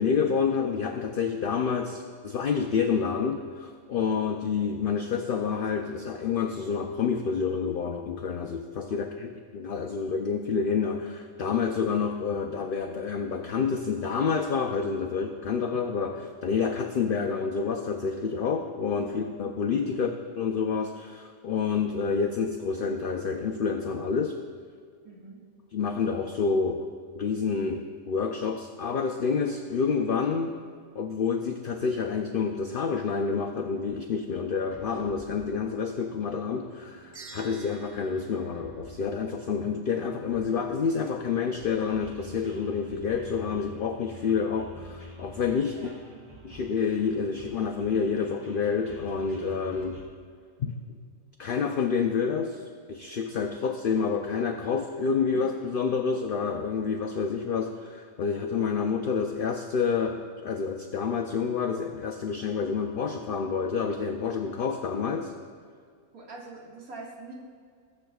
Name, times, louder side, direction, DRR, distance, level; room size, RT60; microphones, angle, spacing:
voice 1, 0.0-20.1 20.4-24.4 25.7-26.9 27.1-30.5 30.9-45.9 46.4-50.0 50.6-50.7 51.4-52.6 52.9-60.2 60.4-65.3, left 5 dB, 65° left, 3 dB, 0.5 m, -28 dB
voice 2, 8.9-9.3 19.9-20.1 25.0-25.4 45.7-45.9 55.3-55.4 66.1-67.3, right 3 dB, 85° right, -3 dB, 2.2 m, -46 dB
sound 1, 34.6-50.0, right 1 dB, 10° right, 1.7 m, -49 dB
sound 2, 37.1-39.6, right 4 dB, 50° right, 1.6 m, -50 dB
20.0 x 7.4 x 2.3 m, 2.1 s
omnidirectional pair, 1.5 m